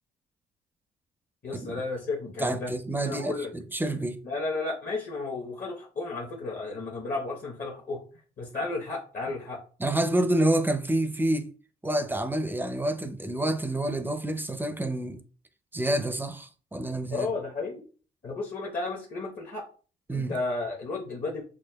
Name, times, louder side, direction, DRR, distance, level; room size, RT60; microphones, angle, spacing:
voice 1, 1.4-2.8 3.0-3.5 4.2-8.0 8.4-9.6 17.1-17.8 18.2-19.7 20.1-21.4, left 3 dB, 45° left, 1.0 m, -33 dB
voice 2, 2.4-4.2 9.8-11.5 11.8-15.2 15.7-17.3 20.1-20.3, right 1 dB, 10° right, 0.5 m, -28 dB
6.3 x 2.3 x 2.3 m
cardioid pair, 90°, 20 cm